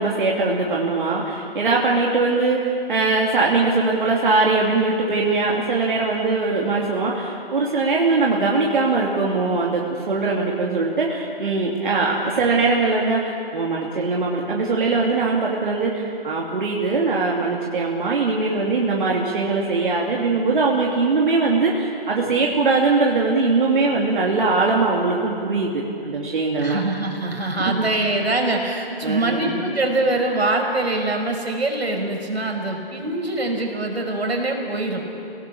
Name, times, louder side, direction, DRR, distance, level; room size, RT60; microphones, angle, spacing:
voice 1, 0.0-26.8 27.6-27.9 29.0-29.6, right 3 dB, 55° right, -2 dB, 2.9 m, -21 dB
voice 2, 26.6-35.0, right 2 dB, 85° right, 2 dB, 5.4 m, -23 dB
28.0 x 17.5 x 8.6 m, 2.6 s
figure-of-eight pair, 160°, 31 cm